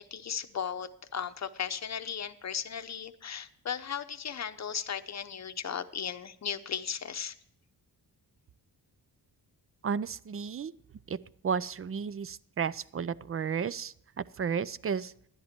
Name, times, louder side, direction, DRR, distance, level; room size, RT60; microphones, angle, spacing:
voice 1, 0.0-7.4, left 7 dB, 40° left, 10 dB, 0.8 m, -36 dB
voice 2, 9.8-10.7 11.1-11.2 11.4-15.1, right 6 dB, 35° right, 18 dB, 0.4 m, -33 dB
11.5 x 10.5 x 4.4 m, 0.67 s
cardioid pair, 85°, 41 cm